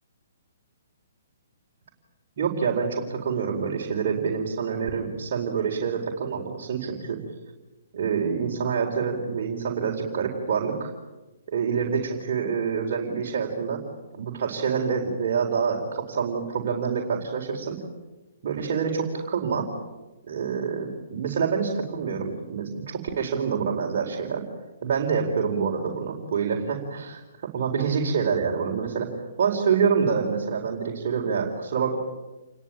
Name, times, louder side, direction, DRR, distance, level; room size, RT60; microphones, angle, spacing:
voice 1, 2.4-7.2 7.9-10.9 11.5-13.8 14.2-17.8 18.4-19.7 20.3-24.4 24.8-29.1 29.4-32.0, right 6 dB, 50° right, -2 dB, 4.5 m, -26 dB
28.5 x 22.0 x 8.9 m, 1.1 s
figure-of-eight pair, 125°, 0 cm